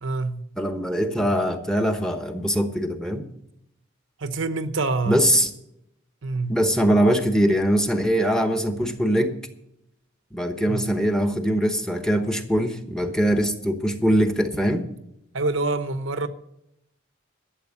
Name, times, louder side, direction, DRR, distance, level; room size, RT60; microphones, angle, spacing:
voice 1, 0.0-0.4 4.2-5.2 6.2-6.6 10.7-10.8 15.3-16.3, right 3 dB, 70° right, 0.9 m, -26 dB
voice 2, 0.6-3.3 5.1-5.5 6.5-9.3 10.3-14.9, equal, 5° left, 1.0 m, -22 dB
12.5 x 7.7 x 7.4 m
head